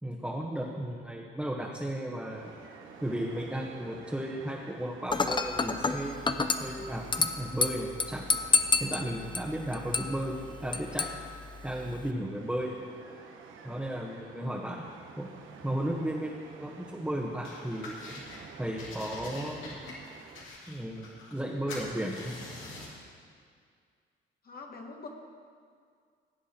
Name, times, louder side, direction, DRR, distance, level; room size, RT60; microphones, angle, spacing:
voice 1, 0.0-2.5 3.0-8.3 8.8-10.4 10.6-11.1 11.6-12.7 13.6-14.8 15.2-15.3 15.6-18.2 18.6-19.7 20.7-22.3, right 1 dB, 5° right, -3 dB, 1.3 m, -34 dB
sound 1, 2.3-20.5, right 5 dB, 80° right, 1.2 m, -51 dB
Dishes pots and pans / Glass, 5.1-12.1, left 4 dB, 25° left, 0.7 m, -31 dB
voice 2, 14.0-14.7 24.4-25.1, left 3 dB, 50° left, 1 dB, 1.5 m, -45 dB
sound 2, 17.4-18.4 18.8-21.4 21.7-23.0, left 2 dB, 90° left, 2.4 m, -44 dB
17.0 x 8.0 x 4.4 m, 2.1 s
cardioid pair, 90°, 20 cm